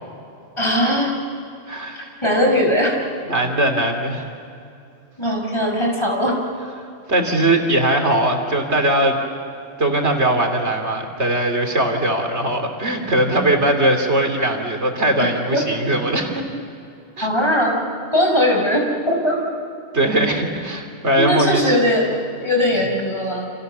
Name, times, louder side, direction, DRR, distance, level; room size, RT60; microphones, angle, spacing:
voice 1, 0.6-1.1 2.2-3.0 5.2-6.4 15.2-15.6 17.2-17.8 18.1-19.4 21.1-23.5, left 1 dB, 25° left, 0 dB, 5.7 m, -19 dB
voice 2, 1.7-2.1 3.3-4.2 7.1-9.2 9.8-16.4 17.2-17.3 19.9-21.8, right 1 dB, 85° right, 4 dB, 3.5 m, -20 dB
29.5 x 28.0 x 7.0 m, 2.5 s
omnidirectional pair, 1.1 m